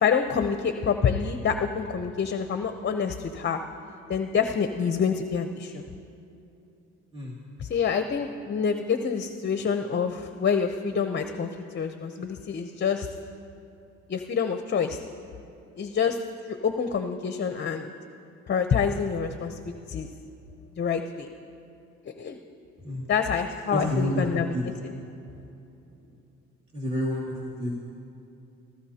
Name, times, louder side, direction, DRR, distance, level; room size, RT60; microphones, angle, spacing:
voice 1, 0.0-3.6 4.1-5.8 7.6-11.5 11.7-13.1 14.1-15.0 15.8-16.2 16.5-17.9 18.5-20.1 20.8-21.3 22.1-22.4 23.1-24.5 24.8-24.9, left 6 dB, 35° left, 7 dB, 0.8 m, -27 dB
voice 2, 23.7-24.6 26.7-27.8, left 1 dB, 20° right, -4 dB, 2.5 m, -29 dB
26.0 x 14.5 x 2.9 m, 2.8 s
supercardioid pair, 75°, 30 cm